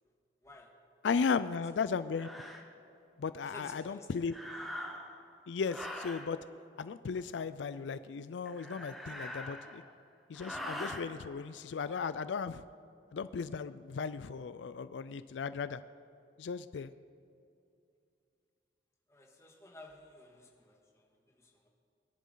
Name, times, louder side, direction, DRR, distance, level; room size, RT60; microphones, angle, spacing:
voice 1, 1.0-2.3 3.2-4.3 5.5-6.4 6.8-9.8 10.3-12.6 13.1-15.8 16.4-16.9, left 5 dB, 90° left, 14 dB, 0.4 m, -36 dB
sound 1, 2.1-2.6 4.3-5.2 5.7-6.3 8.5-9.9 10.3-11.0, equal, ahead, 1.1 m, -43 dB
voice 2, 3.4-4.1 19.1-21.0 21.4-21.7, left 2 dB, 15° left, 0 dB, 1.7 m, -54 dB
22.0 x 10.5 x 3.9 m, 2.5 s
head